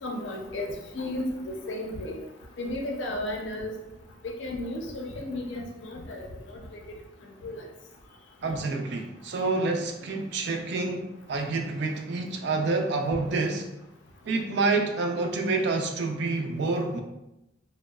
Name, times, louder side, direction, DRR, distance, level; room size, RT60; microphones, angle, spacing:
voice 1, 0.0-2.2 2.6-3.7 4.4-6.8 7.4-7.6, left 1 dB, 80° left, 1 dB, 0.5 m, -34 dB
voice 2, 8.4-13.7 14.2-17.0, right 3 dB, 65° right, 3 dB, 0.3 m, -28 dB
2.8 x 2.0 x 2.2 m, 0.92 s
head